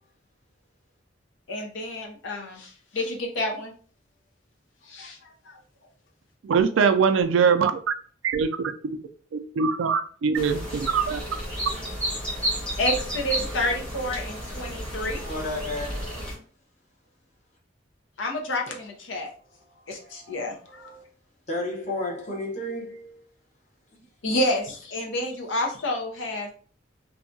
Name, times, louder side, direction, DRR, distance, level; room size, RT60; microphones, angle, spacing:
voice 1, 1.5-3.7 4.8-5.2 5.5-5.6 12.8-15.2 18.2-19.3 19.9-21.0 24.2-26.5, left 1 dB, 75° left, 0.7 m, -29 dB
voice 2, 6.4-7.7 8.3-8.7 9.3-10.6 10.9-11.2, right 6 dB, 80° right, 0.3 m, -22 dB
sound 1, 10.3-16.4, equal, 5° left, 0.8 m, -32 dB
voice 3, 15.3-16.2 21.5-23.2, left 1 dB, 40° left, 0.8 m, -32 dB
2.7 x 2.2 x 2.6 m
head